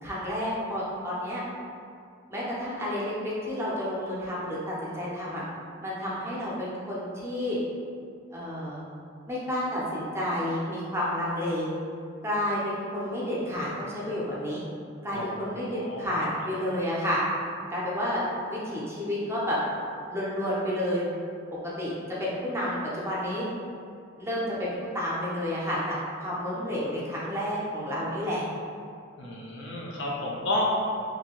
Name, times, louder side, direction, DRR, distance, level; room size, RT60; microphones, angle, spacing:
voice 1, 0.0-1.4 2.3-5.4 5.8-7.6 8.3-8.8 9.3-11.7 12.2-14.6 15.0-17.2 17.7-18.2 18.5-19.6 20.1-21.1 21.8-21.9 22.2-23.5 24.2-28.4, left 1 dB, 15° right, -7 dB, 0.6 m, -30 dB
voice 2, 15.7-16.1 29.2-30.7, left 1 dB, 65° left, -4 dB, 0.5 m, -31 dB
2.7 x 2.6 x 2.9 m, 2.3 s
head